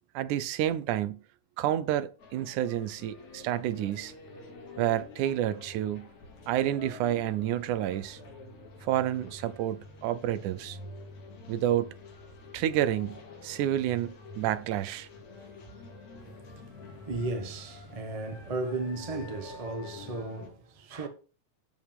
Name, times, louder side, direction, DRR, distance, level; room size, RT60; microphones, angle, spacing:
voice 1, 0.2-1.2 1.6-4.1 4.8-6.1 6.5-8.2 8.8-10.8 11.5-11.9 12.5-15.1, right 12 dB, 80° right, 2.1 m, -29 dB
sound 1, 2.2-20.5, left 3 dB, 60° left, 3.5 m, -48 dB
voice 2, 16.1-21.1, right 2 dB, 50° right, 0.4 m, -36 dB
13.0 x 5.2 x 3.5 m
omnidirectional pair, 3.6 m